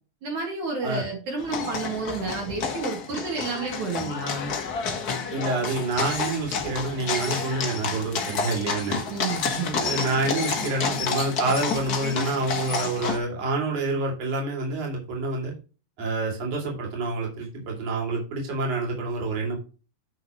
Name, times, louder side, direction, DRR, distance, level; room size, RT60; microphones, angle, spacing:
voice 1, 0.2-4.5 9.1-9.8, right 4 dB, 70° right, -1 dB, 3.4 m, -31 dB
sound 1, 1.4-13.2, left 5 dB, 80° left, 0.8 m, -30 dB
voice 2, 5.3-9.0 9.8-15.5 16.0-19.6, right 3 dB, 55° right, 0 dB, 3.5 m, -27 dB
9.5 x 6.5 x 3.0 m, 0.34 s
omnidirectional pair, 3.7 m